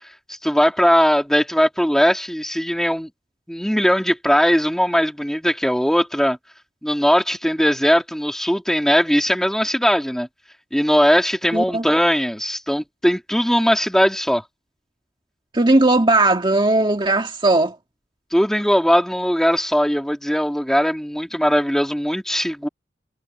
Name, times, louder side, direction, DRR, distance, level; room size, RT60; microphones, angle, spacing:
voice 1, 0.3-3.1 3.5-6.4 6.8-10.3 10.7-14.4 18.3-22.7, equal, 5° left, 3.0 m, -19 dB
voice 2, 11.5-11.9 15.5-17.8, right 2 dB, 30° right, 1.8 m, -17 dB
head